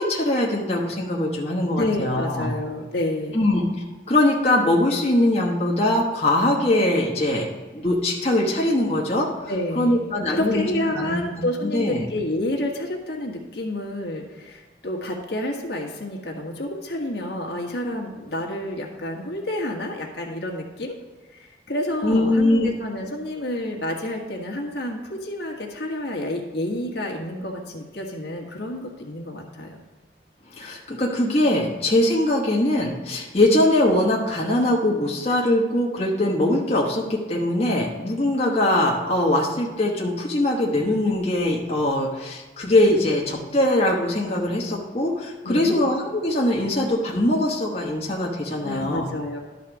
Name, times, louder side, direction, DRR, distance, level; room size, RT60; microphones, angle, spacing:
voice 1, 0.0-2.5 3.3-7.5 7.7-10.7 10.9-12.0 22.0-22.7 30.5-49.1, left 1 dB, 35° left, -3 dB, 1.1 m, -22 dB
voice 2, 1.7-3.5 9.5-21.0 21.3-29.8 45.4-45.8 48.6-49.4, left 1 dB, 70° left, 0 dB, 1.5 m, -29 dB
12.0 x 4.1 x 6.1 m, 1.3 s
head